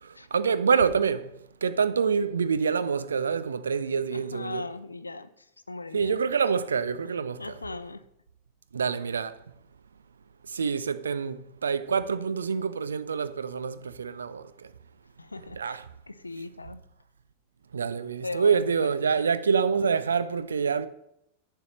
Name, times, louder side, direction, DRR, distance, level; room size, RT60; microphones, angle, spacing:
voice 1, 0.3-1.3 1.6-4.6 5.9-7.4 8.7-9.3 10.5-14.4 15.6-15.8 17.7-20.9, right 6 dB, 70° right, 0.5 m, -26 dB
voice 2, 4.1-6.2 7.4-8.0 15.2-16.8 18.2-19.3, left 2 dB, 80° left, 0.5 m, -39 dB
11.0 x 4.7 x 6.4 m
figure-of-eight pair, 90°, 0 cm